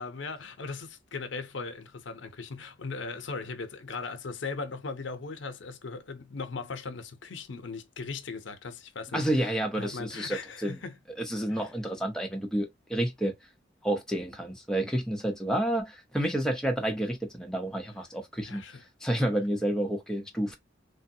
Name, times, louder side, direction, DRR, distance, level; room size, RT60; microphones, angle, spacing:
voice 1, 0.0-11.0 11.5-11.7 18.4-18.8, left 4 dB, 80° left, 0.6 m, -38 dB
voice 2, 9.1-10.8 11.2-13.3 13.8-18.6 19.0-20.6, right 1 dB, 5° left, 0.7 m, -30 dB
3.3 x 2.2 x 2.7 m
head